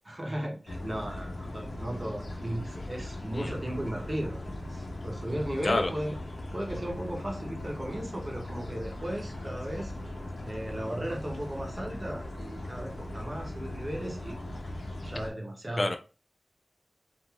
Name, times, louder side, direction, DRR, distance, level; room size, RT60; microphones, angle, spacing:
voice 1, 0.1-6.2 6.5-9.9 10.4-14.4 15.0-16.0, right 1 dB, 35° right, 0 dB, 0.8 m, -36 dB
sound 1, 0.7-15.3, left 1 dB, 85° left, 0.7 m, -39 dB
voice 2, 3.3-3.5 5.6-5.9 15.8-16.0, left 2 dB, 50° left, 5 dB, 0.4 m, -27 dB
2.5 x 2.3 x 2.9 m, 0.33 s
wide cardioid pair, 70°, 0 cm